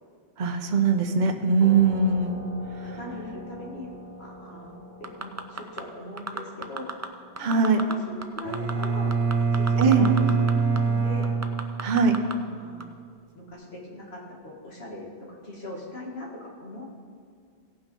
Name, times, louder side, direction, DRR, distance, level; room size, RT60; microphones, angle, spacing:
voice 1, 0.4-2.4 7.4-7.8 9.8-10.1 11.8-12.1, right 5 dB, 45° right, 5 dB, 0.9 m, -21 dB
sound 1, 1.6-10.8, left 1 dB, 25° left, 3.0 m, -44 dB
voice 2, 2.8-3.9 4.2-7.0 7.4-11.3 12.5-12.9 13.3-16.8, left 1 dB, 65° left, -2 dB, 2.1 m, -40 dB
sound 2, 5.0-5.8 6.2-7.1 7.4-7.9 8.2-10.5 10.8-10.9 11.2-12.3 12.8-12.9, right 3 dB, 25° right, 0.3 m, -33 dB
Bowed string instrument, 8.4-12.3, right 5 dB, 70° right, 1.6 m, -25 dB
17.0 x 5.8 x 5.4 m, 2.2 s
omnidirectional pair, 1.1 m